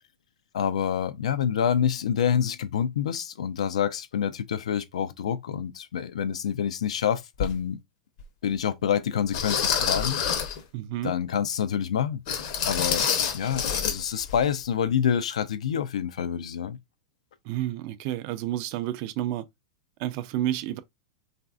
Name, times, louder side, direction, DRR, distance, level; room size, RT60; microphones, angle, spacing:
voice 1, 0.5-7.8 8.4-10.5 11.0-12.2 12.6-13.1 13.3-16.8, left 8 dB, 85° left, 0.4 m, -27 dB
sound 1, 7.4-7.5 8.2-8.3 9.3-10.6 12.3-14.0 14.3-14.4 14.9-15.0, left 7 dB, 60° left, 0.8 m, -27 dB
voice 2, 10.7-11.1 17.4-19.4 20.0-20.8, right 13 dB, 50° right, 0.4 m, -30 dB
3.2 x 2.5 x 2.3 m
hypercardioid pair, 120°, 3 cm